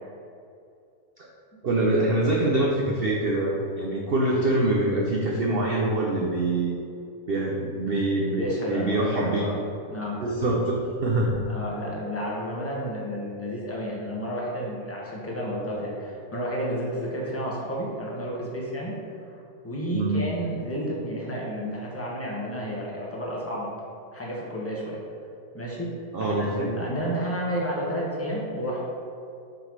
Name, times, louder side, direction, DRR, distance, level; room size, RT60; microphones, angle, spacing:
voice 1, 1.6-6.8 7.3-9.6 10.2-11.4 19.9-20.2 26.1-26.7, right 2 dB, 75° right, -2 dB, 0.5 m, -24 dB
voice 2, 8.4-9.5 9.9-10.2 11.5-19.0 19.3-19.4 19.6-23.7 24.1-25.0 25.5-25.9 26.2-28.9, equal, 10° left, -5 dB, 0.9 m, -31 dB
6.0 x 3.9 x 4.6 m, 2.5 s
omnidirectional pair, 1.8 m